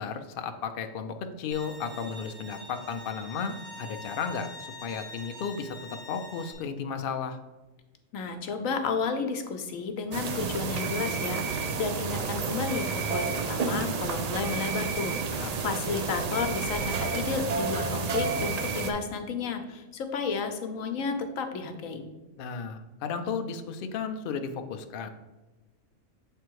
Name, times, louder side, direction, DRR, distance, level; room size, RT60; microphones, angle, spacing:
voice 1, 0.0-7.4 15.3-15.5 22.4-25.1, left 6 dB, 60° left, 7 dB, 0.6 m, -34 dB
Bowed string instrument, 1.5-6.5, left 1 dB, 50° right, 2.5 m, -44 dB
voice 2, 8.1-22.1, left 5 dB, 85° left, 6 dB, 1.1 m, -32 dB
sound 1, 10.1-18.9, right 5 dB, 75° right, 0.3 m, -30 dB
7.5 x 3.4 x 4.6 m, 1.1 s
omnidirectional pair, 1.4 m